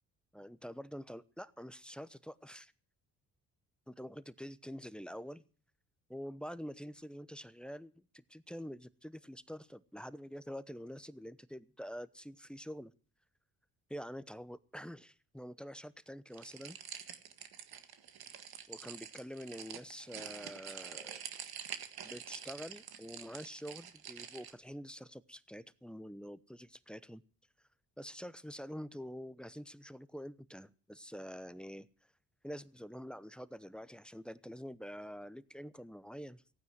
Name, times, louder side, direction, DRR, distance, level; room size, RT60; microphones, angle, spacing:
voice 1, 0.3-2.7 3.9-5.4 6.1-12.9 13.9-16.8 18.7-21.2 22.0-27.2 28.0-31.9 32.4-36.4, equal, ahead, 16 dB, 0.9 m, -46 dB
sound 1, 16.3-24.5, right 8 dB, 65° right, 1.8 m, -47 dB
15.5 x 9.3 x 8.0 m, 0.40 s
supercardioid pair, 65°, 39 cm